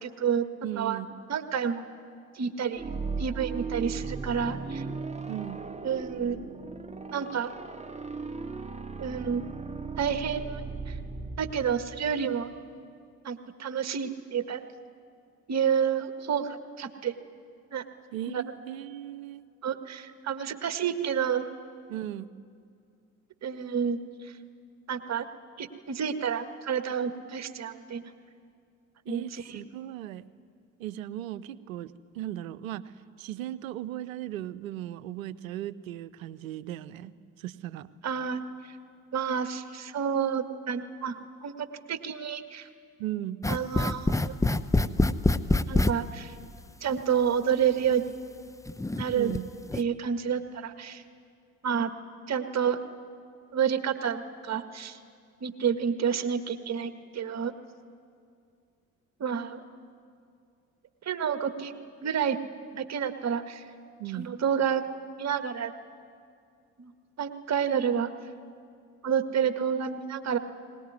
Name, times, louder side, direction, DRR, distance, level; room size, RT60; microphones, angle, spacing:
voice 1, 0.0-0.4 0.8-1.0 1.3-1.8 2.3-2.9 3.2-4.8 5.8-6.4 7.1-7.5 9.0-9.4 10.0-11.0 11.4-12.5 13.2-14.6 15.5-17.1 17.7-17.8 18.3-18.4 19.6-21.4 23.4-24.3 24.9-25.2 25.6-28.1 29.1-29.6 38.0-38.4 39.1-41.5 41.9-42.7 43.5-44.3 45.7-46.3 46.8-48.0 49.0-49.3 49.7-51.0 51.6-51.9 52.3-52.8 53.5-55.0 55.4-57.5 59.2-59.6 61.0-61.7 62.0-62.4 62.7-63.7 64.1-64.8 65.2-65.7 66.8-66.9 67.2-68.1 69.0-70.4, right 7 dB, 40° right, 9 dB, 1.8 m, -29 dB
voice 2, 0.6-1.1 5.3-5.6 18.1-19.4 21.9-22.3 29.1-30.2 30.8-32.8 33.2-37.9 43.0-43.4 49.2-49.4 64.0-64.3, right 13 dB, 75° right, 17 dB, 0.8 m, -37 dB
sound 1, 2.7-12.5, right 4 dB, 15° right, 1.7 m, -37 dB
sound 2, 43.4-45.9 47.0-47.1 47.8-47.9 48.7-49.4 49.6-49.8, left 2 dB, 10° left, 0.8 m, -25 dB
22.5 x 20.0 x 9.6 m, 2.3 s
figure-of-eight pair, 50°, 41 cm